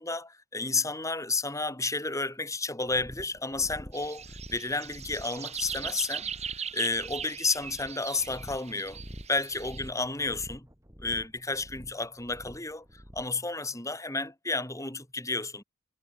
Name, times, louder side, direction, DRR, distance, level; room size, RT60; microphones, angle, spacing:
voice 1, 0.0-4.2 4.5-6.3 6.7-9.0 9.3-10.7 11.0-15.6, left 3 dB, 15° left, 7.1 m, -31 dB
sound 1, 2.9-13.4, equal, 15° right, 4.4 m, -48 dB
sound 2, 3.9-9.9, right 7 dB, 30° right, 2.9 m, -40 dB
head